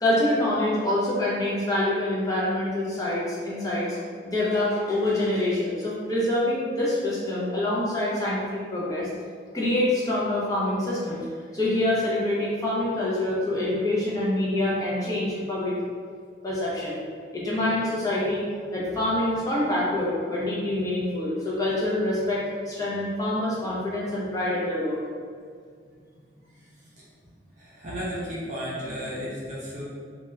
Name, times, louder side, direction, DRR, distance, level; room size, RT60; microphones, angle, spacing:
voice 1, 0.0-9.1 9.5-11.2 11.5-15.7 16.4-17.0 17.3-18.5 18.7-25.0, left 1 dB, 20° left, -7 dB, 0.6 m, -26 dB
voice 2, 27.6-29.8, equal, 40° right, -7 dB, 0.6 m, -33 dB
2.8 x 2.3 x 3.1 m, 2.1 s
head